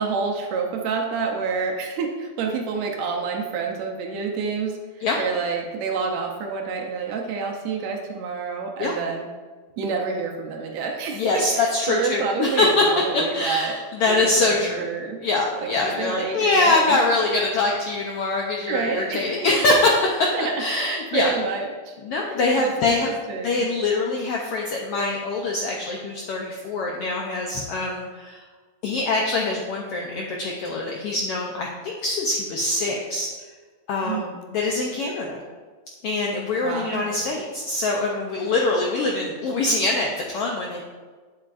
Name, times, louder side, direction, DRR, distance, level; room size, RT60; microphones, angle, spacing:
voice 1, 0.0-9.3 9.8-13.8 14.1-15.2 15.8-17.0 18.7-19.6 20.3-22.0 22.6-23.7 34.0-34.4 36.6-37.2, right 5 dB, 75° right, 1 dB, 1.9 m, -28 dB
voice 2, 11.1-12.8 13.1-14.8 15.2-21.4 22.0-23.1 23.4-28.4 28.8-33.3 33.9-35.4 36.0-40.8, left 2 dB, 80° left, -1 dB, 1.3 m, -24 dB
8.5 x 7.5 x 2.5 m, 1.4 s
omnidirectional pair, 3.5 m